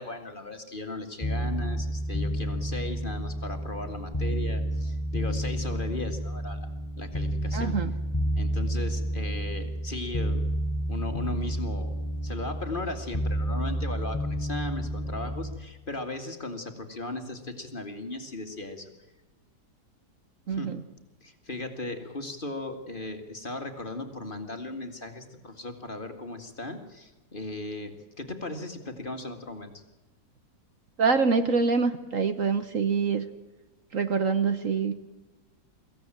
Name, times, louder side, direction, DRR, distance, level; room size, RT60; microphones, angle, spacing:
voice 1, 0.0-6.7 7.0-7.8 8.3-10.5 10.9-11.9 12.2-18.9 20.5-20.7 21.2-29.8, left 2 dB, 30° left, 6 dB, 2.1 m, -37 dB
sound 1, 1.2-15.6, equal, 10° left, 3.7 m, -30 dB
voice 2, 7.5-7.9 20.5-20.8 31.0-33.2 33.9-34.9, right 5 dB, 55° right, 9 dB, 1.3 m, -25 dB
23.5 x 16.0 x 9.0 m, 1.1 s
omnidirectional pair, 1.8 m